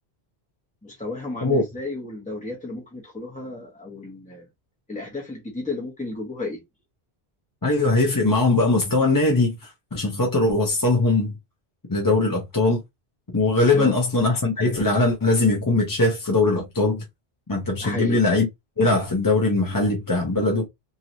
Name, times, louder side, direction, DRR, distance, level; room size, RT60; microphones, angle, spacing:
voice 1, 0.8-4.5 4.9-6.6 13.6-13.9 17.8-18.2, left 2 dB, 10° left, 1.0 m, -33 dB
voice 2, 7.6-11.3 11.9-12.8 13.3-17.0 17.5-18.5 18.8-20.7, left 2 dB, 25° left, 0.6 m, -21 dB
3.0 x 2.8 x 2.6 m
omnidirectional pair, 1.1 m